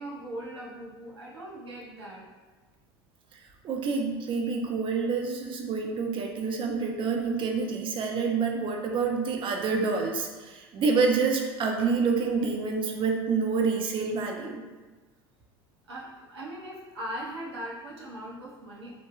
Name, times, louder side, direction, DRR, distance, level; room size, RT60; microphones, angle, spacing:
voice 1, 0.0-2.2 15.9-19.0, right 1 dB, 85° right, -5 dB, 0.7 m, -39 dB
voice 2, 3.6-14.6, right 4 dB, 40° right, 2 dB, 0.5 m, -27 dB
3.1 x 2.1 x 2.3 m, 1.3 s
hypercardioid pair, 80°, 13 cm